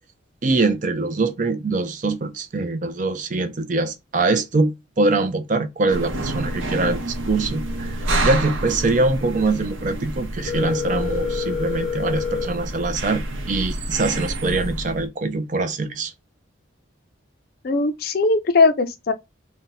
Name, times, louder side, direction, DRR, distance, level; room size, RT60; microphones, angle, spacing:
voice 1, 0.4-16.1, right 3 dB, 40° right, 0.5 m, -23 dB
sound 1, 5.9-15.1, right 1 dB, 80° right, 0.8 m, -28 dB
Telephone, 10.4-12.4, left 7 dB, 5° right, 1.1 m, -27 dB
voice 2, 17.6-19.1, left 3 dB, 50° left, 0.4 m, -19 dB
2.6 x 2.2 x 3.9 m
head